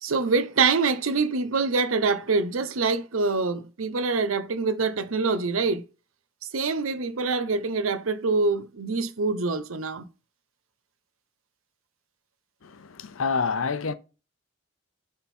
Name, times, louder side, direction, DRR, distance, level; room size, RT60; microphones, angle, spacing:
voice 1, 0.0-5.8 6.5-10.0, right 4 dB, 90° right, 0.8 m, -25 dB
voice 2, 12.6-13.9, left 5 dB, 80° left, 0.7 m, -28 dB
7.0 x 3.8 x 4.2 m
head